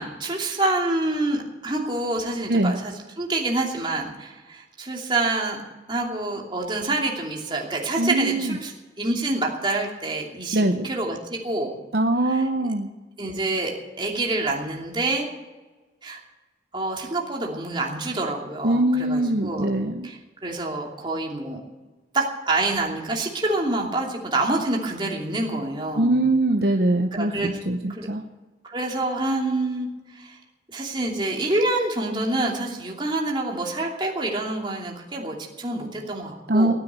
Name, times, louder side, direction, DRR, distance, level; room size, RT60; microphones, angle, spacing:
voice 1, 0.0-5.6 5.9-11.7 12.2-12.7 13.2-15.3 16.0-16.2 16.7-19.7 20.0-21.6 22.1-26.3 27.1-27.6 27.9-28.1 28.6-29.9 30.2-30.4 30.7-36.7, right 2 dB, 25° right, -1 dB, 2.8 m, -27 dB
voice 2, 8.0-8.5 10.5-10.8 11.9-12.9 18.6-20.1 26.0-27.3 27.7-28.2 36.5-36.7, right 1 dB, 60° right, 4 dB, 0.9 m, -22 dB
17.0 x 10.0 x 8.1 m, 1.2 s
head